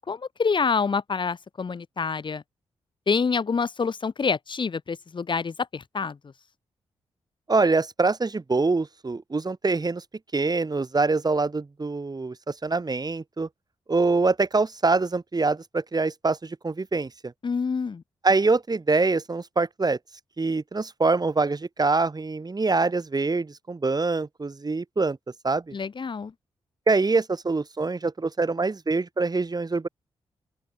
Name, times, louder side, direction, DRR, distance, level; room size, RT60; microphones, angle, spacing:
voice 1, 0.1-2.4 3.1-6.2 17.4-18.0 25.7-26.3, left 5 dB, 45° left, 0.9 m, -27 dB
voice 2, 7.5-10.0 10.3-13.5 13.9-17.1 18.2-20.0 20.4-25.2 25.4-25.7 26.9-29.9, right 3 dB, 35° right, 2.2 m, -24 dB
open air
supercardioid pair, 40°, 12 cm